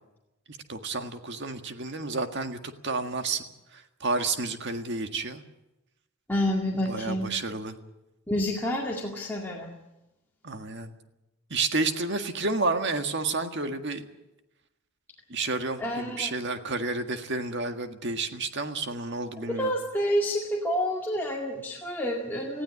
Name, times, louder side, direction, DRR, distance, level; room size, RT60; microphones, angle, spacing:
voice 1, 0.7-3.4 3.7-5.4 6.9-7.7 10.4-10.9 11.5-14.1 15.3-19.7, right 3 dB, 50° right, 7 dB, 1.8 m, -30 dB
voice 2, 6.3-7.3 8.3-9.7 15.8-16.3 19.4-22.6, equal, 10° left, -3 dB, 2.2 m, -29 dB
19.5 x 15.5 x 9.8 m, 0.95 s
head